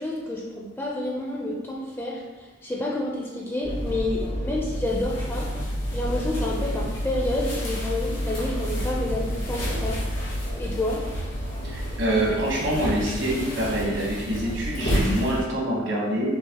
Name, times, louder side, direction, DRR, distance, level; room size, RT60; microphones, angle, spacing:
voice 1, 0.0-5.5 5.9-10.0 10.6-11.0, left 1 dB, 10° left, -3 dB, 0.4 m, -29 dB
sound 1, 3.6-15.4, equal, 85° left, 1.1 m, -29 dB
voice 2, 11.6-16.3, right 1 dB, 70° right, -4 dB, 1.1 m, -26 dB
5.7 x 2.1 x 2.9 m, 1.2 s
head